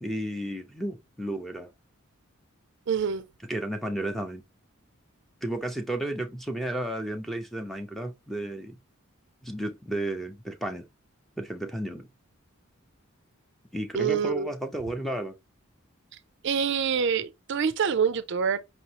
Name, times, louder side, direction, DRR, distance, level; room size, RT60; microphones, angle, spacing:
voice 1, 0.0-1.7 3.4-4.4 5.4-8.8 9.4-10.8 11.4-12.1 13.7-15.4, right 1 dB, ahead, 0.6 m, -33 dB
voice 2, 2.9-3.2 13.9-14.5 16.4-18.6, right 6 dB, 55° right, 0.4 m, -26 dB
5.3 x 3.0 x 2.8 m
head